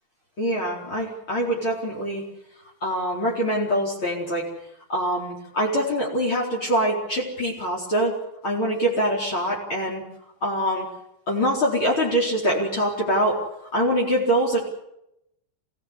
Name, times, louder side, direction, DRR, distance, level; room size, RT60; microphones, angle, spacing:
voice 1, 0.4-2.2 2.8-4.5 4.9-8.2 8.4-10.0 10.4-10.8 11.3-13.4 13.7-14.6, equal, 40° left, -2 dB, 4.8 m, -24 dB
27.5 x 17.0 x 8.2 m, 0.83 s
omnidirectional pair, 3.6 m